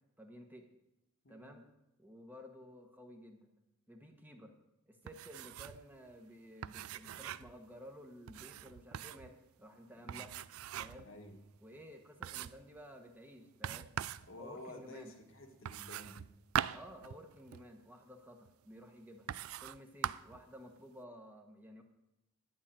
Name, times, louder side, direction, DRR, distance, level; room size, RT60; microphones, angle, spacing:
voice 1, 0.2-0.7 1.3-1.7 2.0-3.5 3.9-4.5 4.9-10.4 10.8-11.1 11.6-13.9 14.4-15.1 16.7-19.3 19.6-21.8, equal, 10° right, 3 dB, 1.1 m, -53 dB
voice 2, 1.2-1.6 10.0-10.2 11.0-11.4 14.3-16.2, left 1 dB, 65° left, 3 dB, 1.5 m, -51 dB
sound 1, 5.1-5.8 6.1-6.2 6.6-7.6 8.3-9.3 10.1-11.1 11.6-11.7 12.2-12.7 13.6-14.3 15.6-17.7 18.4-18.5 19.3-19.8 20.0-20.4, right 10 dB, 80° right, 0.4 m, -41 dB
11.5 x 5.7 x 8.8 m, 0.91 s
head